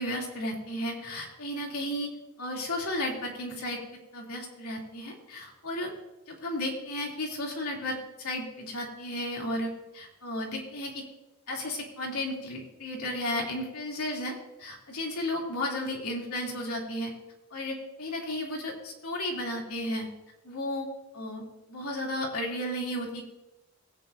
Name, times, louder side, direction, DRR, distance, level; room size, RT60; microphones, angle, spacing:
voice 1, 0.0-2.1 2.4-3.8 4.1-5.9 6.3-11.0 11.5-17.1 17.5-20.1 20.4-20.9 21.1-21.4 21.7-23.2, left 1 dB, 80° left, -2 dB, 2.9 m, -33 dB
19.0 x 9.4 x 2.7 m, 0.96 s
head